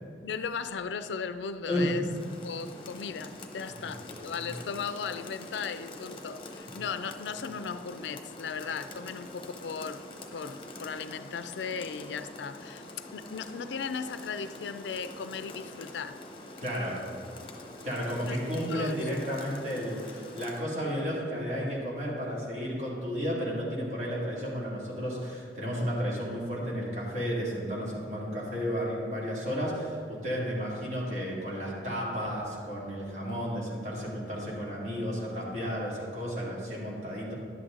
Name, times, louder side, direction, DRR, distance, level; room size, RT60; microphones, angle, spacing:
voice 1, 0.2-2.0 2.4-10.1 10.3-16.2 18.2-19.0, left 6 dB, 85° left, 12 dB, 0.4 m, -37 dB
voice 2, 1.7-2.0 4.4-4.5 16.6-17.0 17.8-37.3, equal, 40° right, -5 dB, 2.3 m, -32 dB
Rain, 2.0-20.7, left 2 dB, 30° left, 0.9 m, -45 dB
11.0 x 7.8 x 3.8 m, 2.5 s
head